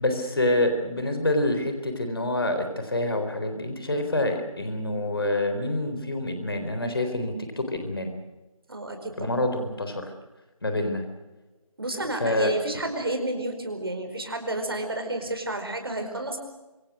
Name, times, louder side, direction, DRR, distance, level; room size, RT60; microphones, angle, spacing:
voice 1, 0.0-8.1 9.2-10.1 10.6-11.0 12.2-12.5, left 1 dB, 40° left, 7 dB, 4.0 m, -27 dB
voice 2, 8.7-9.3 11.8-16.4, right 2 dB, 45° right, 5 dB, 4.9 m, -30 dB
26.5 x 22.5 x 6.4 m, 1.1 s
figure-of-eight pair, 165°, 18 cm